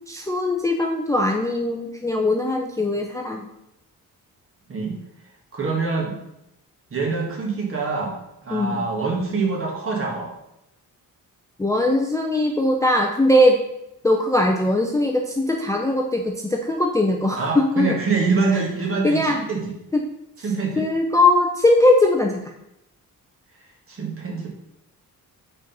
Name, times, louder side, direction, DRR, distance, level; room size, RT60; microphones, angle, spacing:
voice 1, 0.1-3.4 8.5-8.9 11.6-13.6 14.0-18.0 19.0-19.4 19.9-20.0 20.8-22.3, left 1 dB, 10° left, 2 dB, 0.5 m, -20 dB
voice 2, 5.5-6.2 6.9-8.2 8.4-10.3 17.3-19.8 20.4-20.9 23.9-24.5, right 4 dB, 40° right, -1 dB, 1.8 m, -25 dB
5.0 x 4.5 x 5.3 m, 0.84 s
cardioid pair, 130°, 35 cm